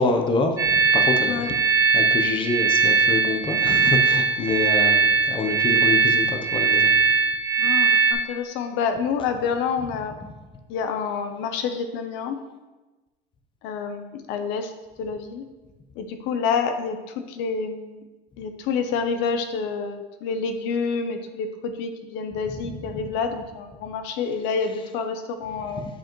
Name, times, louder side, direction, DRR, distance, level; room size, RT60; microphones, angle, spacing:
voice 1, 0.0-1.5 1.9-6.9, left 3 dB, 25° left, 5 dB, 0.7 m, -26 dB
sound 1, 0.6-8.1, right 4 dB, 15° right, 1.5 m, -20 dB
voice 2, 7.6-10.1 10.7-12.4 13.6-14.7 15.0-15.4 16.0-18.0 18.4-25.9, left 5 dB, 70° left, 7 dB, 0.7 m, -28 dB
9.1 x 5.1 x 3.0 m, 1.2 s
cardioid pair, 135°, 20 cm